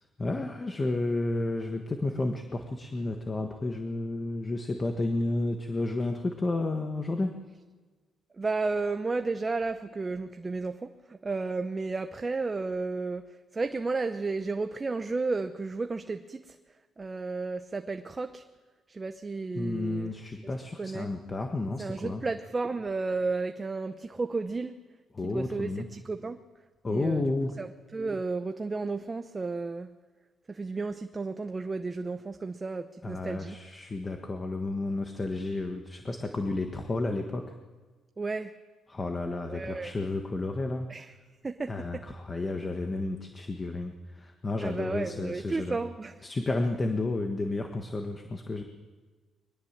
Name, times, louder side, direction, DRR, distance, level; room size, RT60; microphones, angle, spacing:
voice 1, 0.2-7.4 19.6-22.2 25.1-25.9 26.8-27.5 33.0-37.4 38.9-40.9 41.7-45.8 46.2-48.6, left 2 dB, 20° left, 4 dB, 1.5 m, -31 dB
voice 2, 8.4-13.3 13.5-16.6 17.0-18.4 18.9-20.1 20.8-21.1 21.8-24.7 25.2-26.4 26.9-27.3 27.6-29.9 30.5-33.6 38.2-38.5 39.5-39.9 40.9-41.1 41.4-42.0 44.6-46.2, right 3 dB, 20° right, 8 dB, 0.7 m, -33 dB
22.5 x 20.0 x 7.5 m, 1.4 s
cardioid pair, 140°, 0 cm